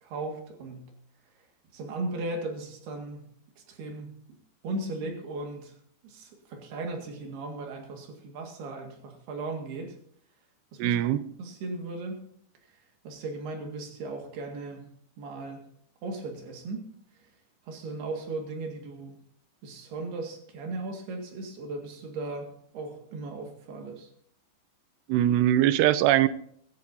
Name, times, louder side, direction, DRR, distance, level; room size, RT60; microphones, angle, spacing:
voice 1, 0.0-0.9 1.7-3.2 3.6-4.1 4.6-5.7 6.0-10.0 10.7-11.0 11.4-12.2 13.0-14.9 15.2-15.7 16.0-16.9 17.7-19.2 19.6-24.1, right 2 dB, 75° right, 3 dB, 4.1 m, -37 dB
voice 2, 10.8-11.2 25.1-26.3, right 13 dB, 90° right, 14 dB, 2.8 m, -22 dB
24.5 x 11.0 x 2.8 m, 0.64 s
omnidirectional pair, 4.7 m